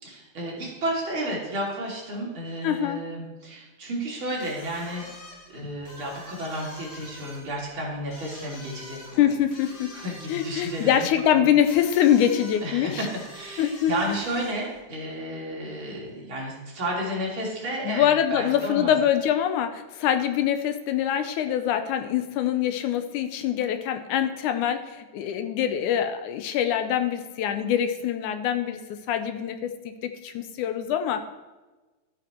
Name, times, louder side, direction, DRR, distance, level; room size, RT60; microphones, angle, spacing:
voice 1, 0.0-5.0 5.5-9.2 9.9-11.1 11.3-11.4 12.6-18.1 18.3-18.9, right 1 dB, 35° right, -4 dB, 3.6 m, -32 dB
voice 2, 2.6-3.0 9.2-10.0 10.3-13.1 13.6-13.9 17.9-31.2, left 10 dB, 75° left, 8 dB, 1.9 m, -24 dB
sound 1, 4.4-14.8, left 2 dB, 45° left, 1.4 m, -46 dB
12.5 x 9.2 x 4.5 m, 1.2 s
omnidirectional pair, 4.1 m